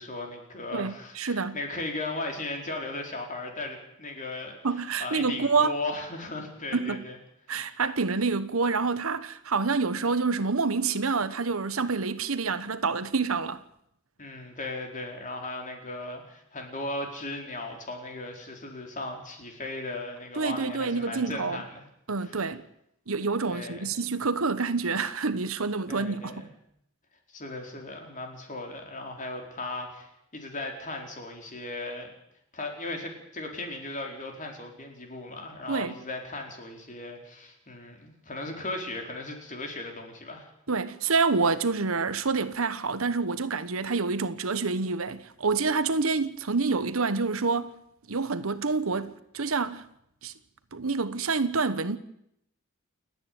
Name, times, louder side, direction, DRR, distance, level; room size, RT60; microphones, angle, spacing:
voice 1, 0.0-7.2 7.5-7.8 14.2-21.8 22.2-22.5 23.5-23.9 25.9-26.5 27.3-32.1 32.5-40.5, left 2 dB, 40° left, 4.5 m, -37 dB
voice 2, 0.7-1.6 4.6-5.7 6.7-7.0 7.5-13.6 20.4-21.6 22.1-22.6 23.1-26.4 35.7-35.9 40.7-47.7 48.1-49.8 50.2-50.3 50.7-52.0, right 4 dB, 75° right, 1.2 m, -27 dB
29.0 x 9.8 x 9.4 m
head